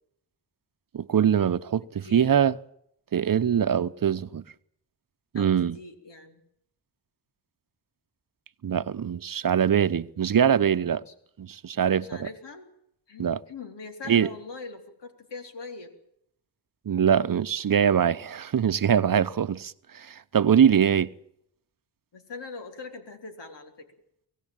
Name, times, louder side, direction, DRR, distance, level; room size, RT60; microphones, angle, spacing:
voice 1, 0.9-2.5 3.1-4.4 5.3-5.8 8.6-11.0 11.4-12.3 13.2-13.4 14.1-14.3 16.9-21.1, right 8 dB, 50° right, 0.9 m, -23 dB
voice 2, 1.8-2.3 3.1-3.4 5.4-6.4 11.1-11.2 11.9-12.7 13.1-15.9 22.1-23.9, left 3 dB, 80° left, 3.7 m, -42 dB
24.5 x 17.5 x 9.0 m
cardioid pair, 70°, 42 cm